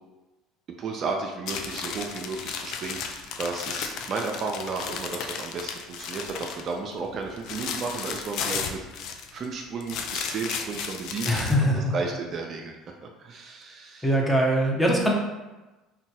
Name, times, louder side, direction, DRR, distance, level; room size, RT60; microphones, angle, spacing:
voice 1, 0.7-8.8 9.3-12.8 13.0-14.1, right 4 dB, 45° right, 2 dB, 0.3 m, -33 dB
sound 1, 1.5-6.7 7.1-9.5 9.8-11.6, left 6 dB, 60° left, 0.3 m, -34 dB
voice 2, 11.3-11.9 14.0-15.1, equal, ahead, -1 dB, 0.7 m, -22 dB
2.9 x 2.2 x 2.8 m, 1.1 s
hypercardioid pair, 70°, 0 cm